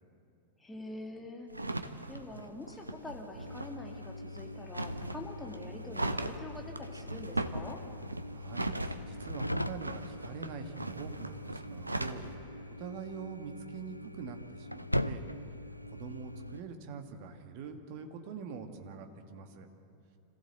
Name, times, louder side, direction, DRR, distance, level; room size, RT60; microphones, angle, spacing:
voice 1, 0.6-7.8, left 2 dB, 10° left, 1 dB, 2.4 m, -45 dB
sound 1, 1.5-12.3, right 1 dB, 85° right, 0.8 m, -39 dB
sound 2, 3.4-16.6, left 1 dB, 90° left, 0.5 m, -41 dB
voice 2, 8.3-15.2 15.9-19.7, right 5 dB, 45° right, 6 dB, 1.8 m, -45 dB
26.0 x 15.5 x 7.8 m, 2.7 s
figure-of-eight pair, 90°, 0 cm